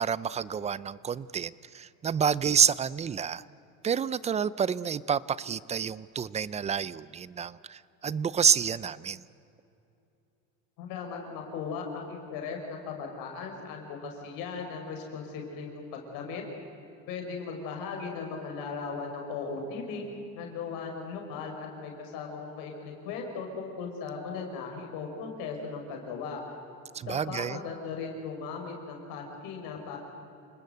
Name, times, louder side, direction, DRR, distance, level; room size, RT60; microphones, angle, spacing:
voice 1, 0.0-3.4 3.8-9.2 26.9-27.6, right 7 dB, 20° right, 19 dB, 0.5 m, -28 dB
voice 2, 10.8-16.4 17.1-20.0 20.3-26.4 27.0-30.0, left 5 dB, 70° left, 2 dB, 4.9 m, -37 dB
28.0 x 20.0 x 7.9 m, 2.8 s
cardioid pair, 135°, 35 cm